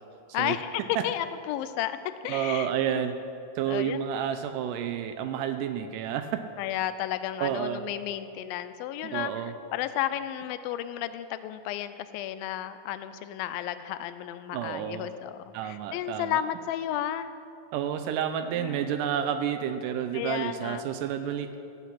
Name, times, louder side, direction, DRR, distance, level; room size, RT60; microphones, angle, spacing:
voice 1, 0.3-2.0 2.2-3.2 3.7-4.1 6.6-17.3 18.6-19.0 20.1-20.8, left 12 dB, 90° left, 12 dB, 2.4 m, -33 dB
voice 2, 2.3-3.1 3.6-6.4 7.4-7.8 9.0-9.5 14.5-15.1 15.5-16.4 17.7-21.5, right 9 dB, 80° right, 9 dB, 2.0 m, -30 dB
15.0 x 8.3 x 5.8 m, 2.7 s
omnidirectional pair, 4.1 m